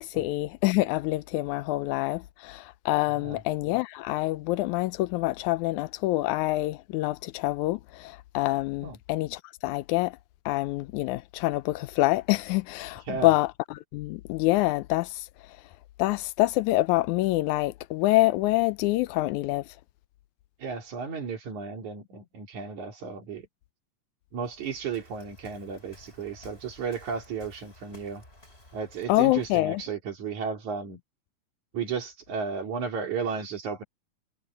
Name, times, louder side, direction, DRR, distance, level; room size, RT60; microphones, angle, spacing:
voice 1, 0.0-10.2 10.5-15.6 16.0-19.8 29.1-29.8, left 18 dB, 80° left, 2.0 m, -26 dB
voice 2, 20.6-23.5 24.3-28.2 28.7-31.0 31.7-33.8, right 5 dB, 75° right, 4.3 m, -34 dB
Waves surf, 24.4-29.7, left 1 dB, 20° left, 5.1 m, -54 dB
omnidirectional pair, 3.5 m